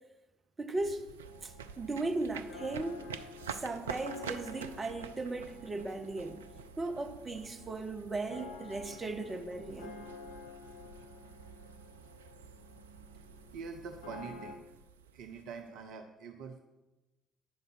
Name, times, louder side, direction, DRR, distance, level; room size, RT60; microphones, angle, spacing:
voice 1, 0.6-1.0 1.4-3.0 3.5-6.4 6.8-10.0, right 2 dB, 25° right, 1.0 m, -37 dB
sound 1, 0.7-15.9, right 7 dB, 75° right, 0.3 m, -48 dB
sound 2, 1.2-14.5, left 5 dB, 75° left, 0.9 m, -51 dB
voice 2, 13.5-14.6 15.1-16.6, right 5 dB, 60° right, 0.7 m, -45 dB
9.3 x 5.3 x 6.1 m
figure-of-eight pair, 50°, 0 cm